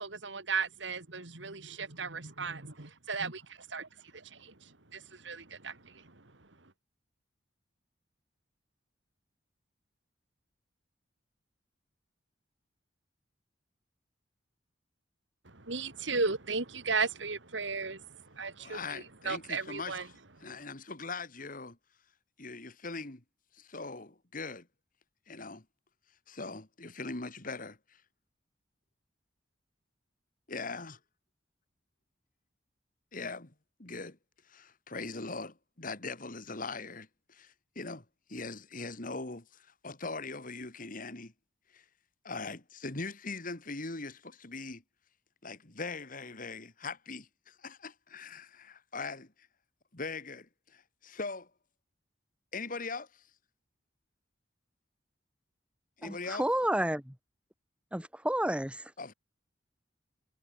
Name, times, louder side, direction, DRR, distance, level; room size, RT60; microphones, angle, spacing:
voice 1, 0.0-6.7 15.4-20.1 20.4-20.5, right 4 dB, 70° right, 2.7 m, -36 dB
voice 2, 18.6-20.0 20.4-21.8 22.4-23.2 23.5-24.7 25.3-25.6 26.3-28.0 30.5-31.0 33.1-33.5 33.8-34.2 34.5-41.3 41.7-41.8 42.2-44.8 45.4-49.3 49.9-51.5 52.5-53.2 56.0-56.4 59.0-59.1, left 3 dB, 45° left, 2.3 m, -41 dB
voice 3, 56.0-57.2 57.9-58.9, right 1 dB, 5° right, 1.9 m, -31 dB
head